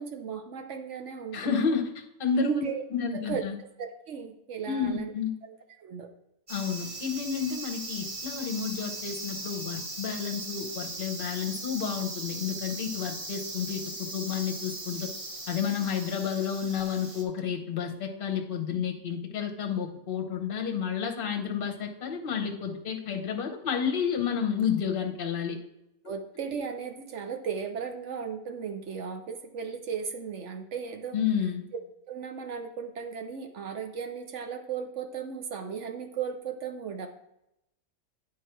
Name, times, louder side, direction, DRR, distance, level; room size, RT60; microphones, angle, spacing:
voice 1, 0.0-1.6 2.4-2.8 3.1-3.4 3.8-5.1 5.4-6.1 26.1-31.2 32.1-37.1, right 6 dB, 60° right, 5 dB, 0.9 m, -36 dB
voice 2, 1.3-2.6 2.9-3.6 4.6-5.3 6.5-15.1 15.5-25.6 26.0-26.1 31.1-31.6, left 7 dB, 40° left, 2 dB, 1.0 m, -31 dB
sound 1, 6.5-17.2, right 2 dB, 30° right, 0.7 m, -39 dB
9.3 x 3.8 x 4.6 m, 0.84 s
omnidirectional pair, 1.6 m